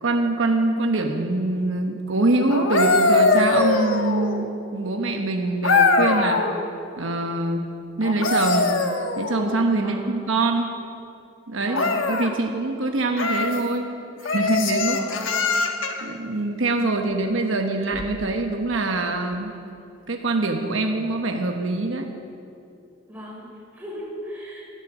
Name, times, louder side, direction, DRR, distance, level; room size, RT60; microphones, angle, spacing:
voice 1, 0.0-6.4 7.0-7.6 8.0-8.7 9.2-10.7 11.5-11.8 12.1-13.9 14.2-15.0 16.0-19.6 20.1-22.1, right 2 dB, 80° right, 3 dB, 1.1 m, -24 dB
sound 1, 2.5-4.5 5.6-6.6 8.0-9.6 11.7-12.3 13.1-13.6 14.2-16.1 17.9-18.1, left 3 dB, 80° left, 1.2 m, -22 dB
voice 2, 9.8-10.2 11.6-12.0 14.9-15.6 23.1-24.6, equal, 10° right, -4 dB, 4.1 m, -36 dB
15.0 x 13.5 x 6.3 m, 2.6 s
head